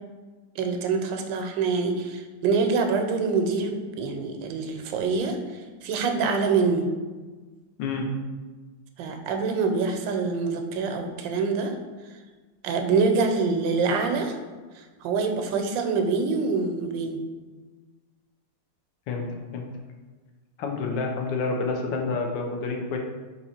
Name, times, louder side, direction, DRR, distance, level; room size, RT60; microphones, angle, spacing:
voice 1, 0.6-6.9 9.0-11.8 12.6-14.4 14.7-17.2, right 4 dB, 85° right, 5 dB, 1.3 m, -25 dB
voice 2, 7.8-8.1 19.1-19.3 19.5-19.7 20.6-23.0, left 4 dB, 85° left, 1 dB, 1.4 m, -28 dB
4.1 x 2.9 x 4.2 m, 1.3 s
omnidirectional pair, 2.0 m